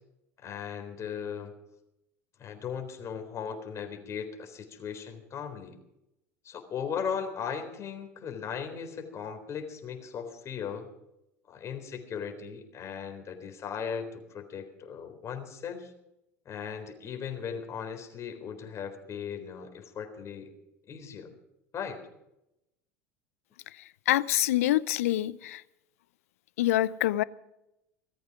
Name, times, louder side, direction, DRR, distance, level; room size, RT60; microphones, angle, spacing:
voice 1, 0.4-1.5 2.4-5.7 6.4-10.9 11.5-15.9 16.5-20.5 20.9-21.3 21.7-22.0, left 7 dB, 35° left, 4.0 m, -37 dB
voice 2, 23.7-25.6 26.6-27.2, left 14 dB, 70° left, 0.6 m, -26 dB
18.5 x 14.0 x 5.0 m
figure-of-eight pair, 75°, 8 cm